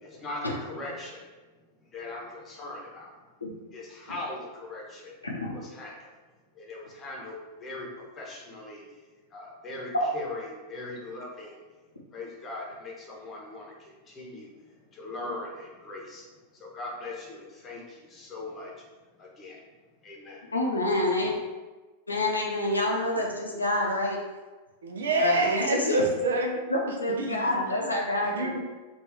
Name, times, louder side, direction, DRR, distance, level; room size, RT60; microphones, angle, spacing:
voice 1, 0.0-1.2 1.9-3.1 3.7-5.1 5.5-5.9 6.6-7.9 8.2-8.8 9.3-11.6 12.1-13.7 14.1-14.5 14.9-16.2 16.6-18.7 19.2-19.6 20.0-20.4, left 2 dB, 25° left, -2 dB, 0.9 m, -40 dB
voice 2, 5.2-5.6 9.9-10.1 20.5-21.4 22.1-24.2 25.1-26.0 26.7-28.6, left 1 dB, 80° left, -1 dB, 0.6 m, -27 dB
voice 3, 24.8-26.6 27.2-27.8 28.2-28.6, right 2 dB, 65° right, 3 dB, 0.5 m, -27 dB
3.2 x 2.5 x 3.5 m, 1.3 s
figure-of-eight pair, 90°, 0 cm